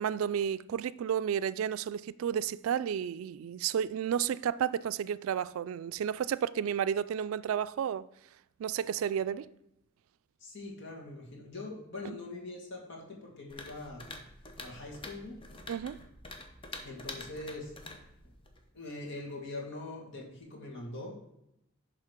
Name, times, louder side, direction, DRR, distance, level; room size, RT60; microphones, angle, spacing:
voice 1, 0.0-8.1 8.6-9.5 15.7-16.0, right 8 dB, 80° right, 0.3 m, -32 dB
voice 2, 10.4-14.0 14.6-15.4 16.8-17.7 18.7-21.1, left 2 dB, 60° left, 2.1 m, -42 dB
sound 1, 13.5-18.7, left 2 dB, 25° left, 0.9 m, -47 dB
11.0 x 3.7 x 5.1 m
head